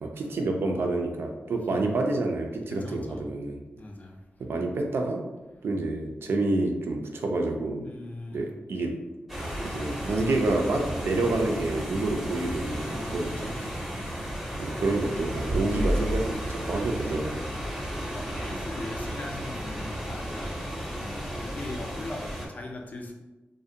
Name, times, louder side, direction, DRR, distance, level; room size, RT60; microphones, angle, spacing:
voice 1, 0.0-3.6 4.4-5.2 5.6-7.9 8.3-9.0 9.6-13.7 14.6-17.4, right 2 dB, 75° right, 3 dB, 0.4 m, -28 dB
voice 2, 2.7-3.3 3.8-4.2 7.8-8.5 12.8-13.9 14.3-14.7 17.7-23.1, left 2 dB, 40° left, 1 dB, 0.4 m, -41 dB
sound 1, 9.3-22.5, equal, 5° right, 0.6 m, -33 dB
2.5 x 2.1 x 2.6 m, 1.1 s
wide cardioid pair, 110°, 4 cm